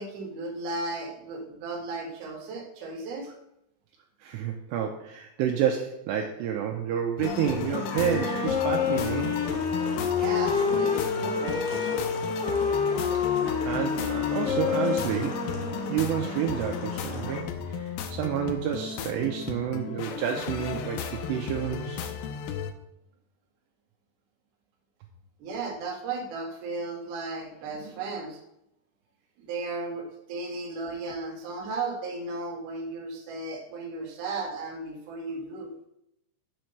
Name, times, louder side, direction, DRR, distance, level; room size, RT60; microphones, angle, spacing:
voice 1, 0.0-3.3 10.1-12.1 25.4-28.4 29.4-35.7, right 3 dB, 60° right, 0 dB, 2.5 m, -35 dB
voice 2, 4.2-9.4 13.7-15.4 15.9-22.1, right 9 dB, 80° right, 2 dB, 2.7 m, -29 dB
sound 1, 7.2-22.7, left 7 dB, 85° left, 2.2 m, -35 dB
sound 2, 7.2-17.4, left 4 dB, 70° left, 2.7 m, -41 dB
Wind instrument woodwind instrument, 7.9-16.3, left 6 dB, 45° left, 2.2 m, -28 dB
7.4 x 4.5 x 6.5 m, 0.80 s
omnidirectional pair, 5.3 m